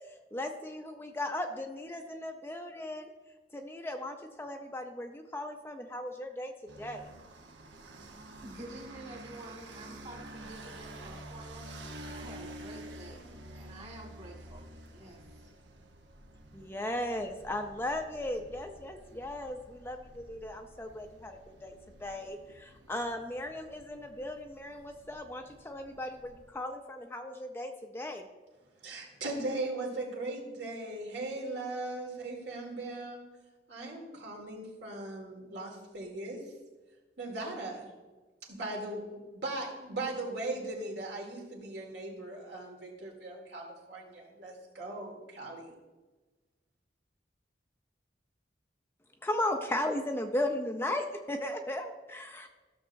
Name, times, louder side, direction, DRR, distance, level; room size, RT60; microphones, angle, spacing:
voice 1, 0.1-3.1 3.5-7.1 16.5-28.3 49.2-52.5, left 1 dB, 15° left, 4 dB, 0.4 m, -36 dB
sound 1, 6.7-26.5, right 1 dB, 90° right, 1.0 m, -50 dB
voice 2, 8.4-15.5, right 1 dB, 35° right, 0 dB, 1.8 m, -49 dB
voice 3, 28.8-33.2 33.7-36.5 37.2-37.9 38.5-45.7, right 2 dB, 70° right, 0 dB, 1.9 m, -39 dB
14.5 x 6.5 x 2.6 m, 1.2 s
head